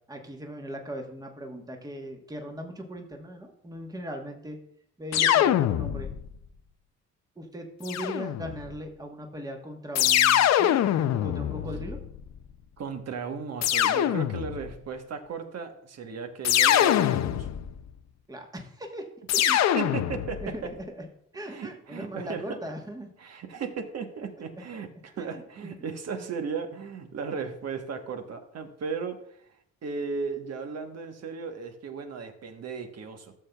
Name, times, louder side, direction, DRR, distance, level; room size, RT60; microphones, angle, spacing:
voice 1, 0.1-4.6 5.0-6.1 7.4-10.8 11.1-12.0 18.3-19.1 19.3-19.6 20.4-21.1 21.3-23.1 25.2-25.9, equal, 10° right, 3 dB, 1.2 m, -39 dB
sound 1, 5.1-6.3 7.8-8.7 9.9-12.3 13.6-14.7 16.4-17.8 19.3-20.5, left 11 dB, 60° left, 0.5 m, -24 dB
voice 2, 12.8-17.5 19.7-20.5 21.5-22.6 23.2-29.2 29.8-33.3, right 5 dB, 55° right, 6 dB, 1.2 m, -36 dB
13.5 x 6.7 x 2.3 m, 0.72 s
cardioid pair, 90°, 30 cm